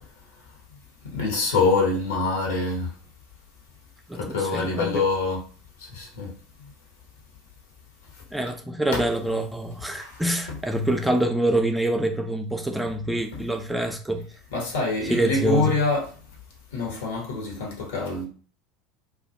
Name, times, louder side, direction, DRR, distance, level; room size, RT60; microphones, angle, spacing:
voice 1, 1.1-2.9 4.1-5.4 5.9-6.3 8.9-9.0 10.0-10.2 10.5-10.6 13.3-13.4 14.5-16.1 16.7-18.2, left 3 dB, 70° left, 0.9 m, -25 dB
voice 2, 4.1-5.0 8.3-14.3 15.1-15.8, right 1 dB, 5° right, 0.4 m, -26 dB
2.4 x 2.2 x 2.6 m
figure-of-eight pair, 70°, 0 cm